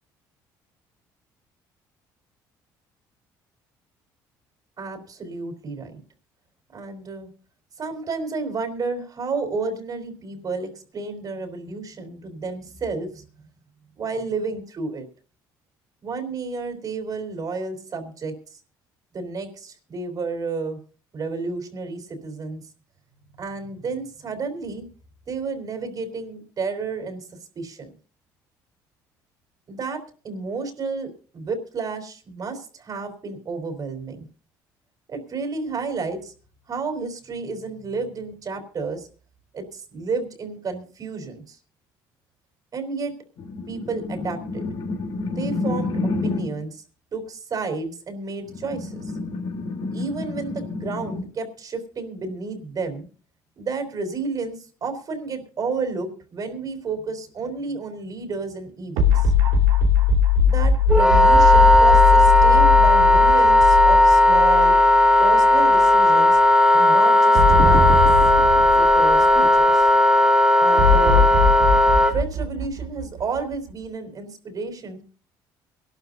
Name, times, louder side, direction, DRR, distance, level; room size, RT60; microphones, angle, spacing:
voice 1, 4.8-6.0 6.7-7.3 7.8-13.2 14.0-15.0 16.0-18.6 19.1-20.8 21.1-22.6 23.4-24.8 25.3-27.3 27.5-27.9 29.7-34.3 35.1-36.3 36.7-39.1 39.5-41.6 42.7-43.1 43.7-44.6 45.4-46.8 47.1-49.1 49.9-53.1 53.6-59.3 60.4-64.7 65.2-66.4 66.7-67.9 68.8-69.9 70.6-71.3 72.1-75.0, right 4 dB, 45° right, 6 dB, 4.3 m, -31 dB
sound 1, 43.4-46.6 48.4-51.2, left 3 dB, 70° left, 3.6 m, -29 dB
sound 2, 59.0-65.3 65.7-65.8 67.3-69.8 70.8-73.5, left 5 dB, 85° right, 2.6 m, -20 dB
Wind instrument woodwind instrument, 60.9-72.1, left 1 dB, 5° right, 3.2 m, -15 dB
23.0 x 12.5 x 2.8 m, 0.39 s
supercardioid pair, 80°, 9 cm